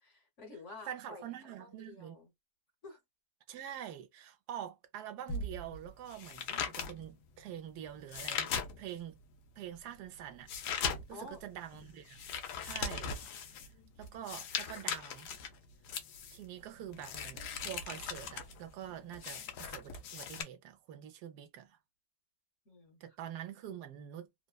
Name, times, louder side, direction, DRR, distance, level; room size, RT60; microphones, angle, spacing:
voice 1, 0.0-1.3 1.6-2.3 2.8-3.0 11.1-11.4 22.6-23.0, left 3 dB, 50° left, 1.3 m, -50 dB
voice 2, 0.9-2.2 3.5-9.2 9.6-10.8 11.1-12.3 12.6-13.5 14.0-15.3 16.3-21.8 23.0-24.3, right 10 dB, 80° right, 1.1 m, -46 dB
sound 1, 5.3-9.1 9.6-20.4, left 6 dB, 90° left, 1.2 m, -40 dB
3.0 x 2.1 x 2.2 m
omnidirectional pair, 1.7 m